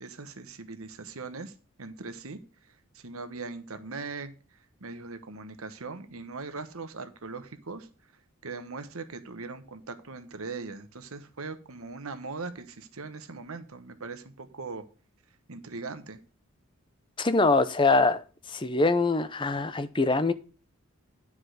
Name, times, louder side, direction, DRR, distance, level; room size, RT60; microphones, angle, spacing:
voice 1, 0.0-1.5 1.8-2.4 2.7-4.3 4.8-7.9 8.4-14.8 15.5-16.2, right 4 dB, 80° right, 1.1 m, -40 dB
voice 2, 17.2-18.2 18.5-20.3, left 3 dB, 20° left, 0.6 m, -23 dB
10.0 x 4.9 x 6.4 m
head